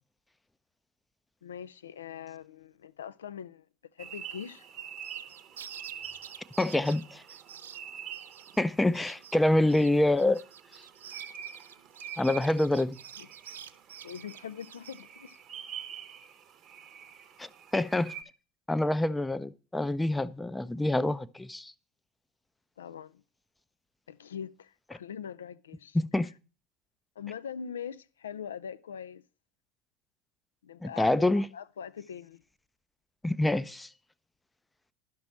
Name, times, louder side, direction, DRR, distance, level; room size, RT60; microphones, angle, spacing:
voice 1, 1.4-3.7 3.9-4.7 13.2-13.3 14.0-15.4 22.8-23.2 24.1-26.0 27.2-29.2 30.6-31.2 31.5-32.4, left 8 dB, 80° left, 0.4 m, -42 dB
sound 1, 4.0-18.2, right 8 dB, 40° right, 0.8 m, -46 dB
sound 2, 5.0-8.6 8.9-9.4 9.7-15.0, right 9 dB, 80° right, 0.3 m, -48 dB
voice 2, 6.6-7.2 8.6-10.4 12.2-13.0 17.4-18.2 18.7-21.7 25.9-26.3 30.8-31.5 33.2-33.9, left 1 dB, 10° left, 0.5 m, -26 dB
11.0 x 6.0 x 4.3 m
figure-of-eight pair, 75°, 0 cm